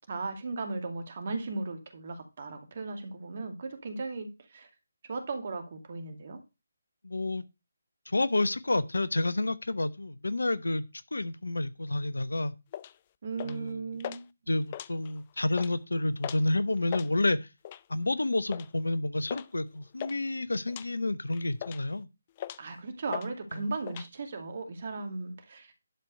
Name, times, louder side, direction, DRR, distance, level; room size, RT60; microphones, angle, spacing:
voice 1, 0.1-4.7 5.1-6.4 13.2-14.2 22.6-25.7, right 3 dB, 45° right, 2.3 m, -36 dB
voice 2, 7.0-7.4 8.1-10.9 11.1-12.5 13.4-13.9 14.5-17.5 17.9-22.1 23.5-23.6, left 2 dB, 75° left, 0.9 m, -29 dB
sound 1, 12.7-12.9 13.4-13.7 14.0-14.2 14.6-15.2 15.5-15.7 16.2-16.5 16.8-17.1 17.6-17.9 18.5-18.7 19.3-19.5 19.7-20.2 20.7-20.9 21.3-21.9 22.4-22.7 23.1-23.3 23.6-24.1, left 11 dB, 30° left, 0.4 m, -39 dB
11.5 x 4.7 x 6.4 m
figure-of-eight pair, 150°, 0 cm